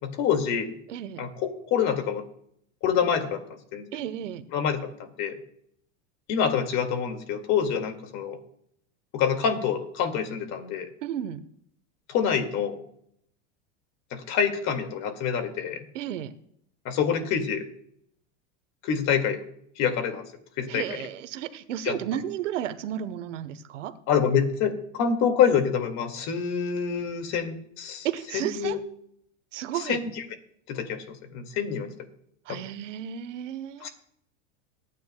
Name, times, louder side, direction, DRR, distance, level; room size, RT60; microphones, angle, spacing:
voice 1, 0.0-0.7 1.2-2.2 2.8-3.4 3.7-3.9 4.5-5.3 6.3-8.4 9.1-10.9 12.1-12.8 14.1-15.8 16.9-17.6 18.8-19.4 19.8-20.3 20.6-20.8 21.9-22.0 24.1-28.1 28.3-28.8 29.9-30.2 30.7-31.9 32.5-32.6 33.8-33.9, left 7 dB, 50° left, 7 dB, 2.1 m, -26 dB
voice 2, 0.9-1.2 3.9-4.4 11.0-11.4 15.9-16.3 20.7-23.9 28.0-28.8 29.5-30.0 32.5-33.9, right 10 dB, 85° right, 13 dB, 1.1 m, -33 dB
23.0 x 9.5 x 2.2 m, 0.69 s
supercardioid pair, 115°, 36 cm